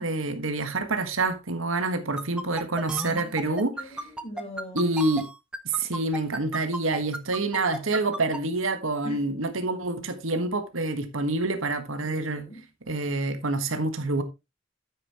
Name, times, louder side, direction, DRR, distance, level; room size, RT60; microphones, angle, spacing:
voice 1, 0.0-3.7 4.7-5.3 5.6-12.4 12.9-14.2, right 2 dB, 90° right, 1.5 m, -27 dB
sound 1, 2.2-8.4, right 1 dB, 5° right, 0.7 m, -33 dB
voice 2, 3.4-5.0 9.0-9.3 12.0-12.7, equal, 30° left, 4.9 m, -41 dB
9.3 x 9.2 x 3.0 m
head